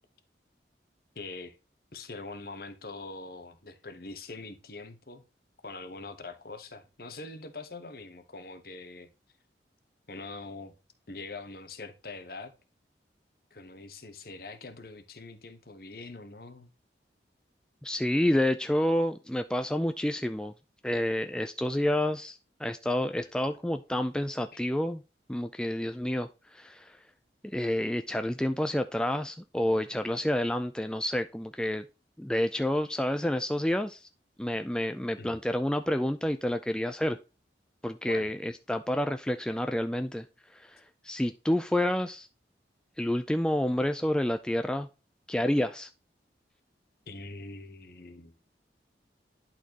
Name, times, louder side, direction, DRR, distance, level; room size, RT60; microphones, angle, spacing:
voice 1, 1.1-1.6 1.9-5.2 5.6-9.1 10.1-10.7 11.1-12.5 13.5-16.7 24.5-24.6 35.2-35.4 38.1-38.3 47.1-48.3, left 3 dB, 55° left, 1.2 m, -43 dB
voice 2, 17.8-20.5 20.8-25.0 25.3-27.0 27.5-31.9 32.2-34.1 34.4-37.2 37.8-40.2 40.5-40.8 41.0-42.3 43.0-44.9 45.3-45.9, left 1 dB, 5° left, 0.3 m, -29 dB
11.0 x 4.3 x 2.9 m
head